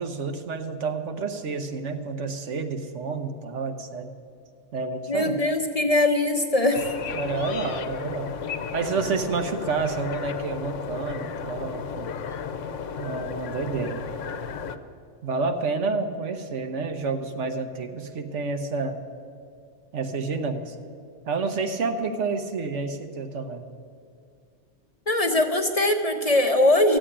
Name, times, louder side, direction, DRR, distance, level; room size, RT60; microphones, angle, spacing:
voice 1, 0.0-4.1 4.7-5.4 7.1-8.3 8.7-12.1 13.0-14.0 15.2-19.0 19.9-20.7 21.2-23.6, right 4 dB, 75° right, 7 dB, 1.3 m, -29 dB
voice 2, 5.1-6.8 25.1-27.0, left 1 dB, 35° left, 5 dB, 0.8 m, -21 dB
sound 1, 6.7-14.8, left 6 dB, 80° left, 1.1 m, -34 dB
15.0 x 7.7 x 9.9 m, 2.3 s
omnidirectional pair, 1.2 m